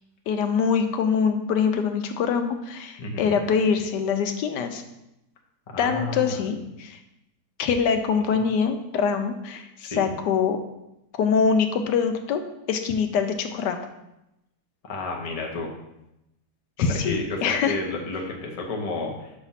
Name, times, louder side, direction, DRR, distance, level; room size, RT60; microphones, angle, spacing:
voice 1, 0.3-4.8 5.8-7.0 7.6-10.6 11.2-12.4 12.7-13.8 16.8-17.8, left 6 dB, 90° left, 6 dB, 1.3 m, -24 dB
voice 2, 3.0-3.4 5.7-6.4 9.9-10.1 14.8-15.7 17.0-19.3, left 3 dB, 35° left, 0 dB, 0.6 m, -31 dB
5.9 x 3.3 x 5.6 m, 0.89 s
omnidirectional pair, 1.8 m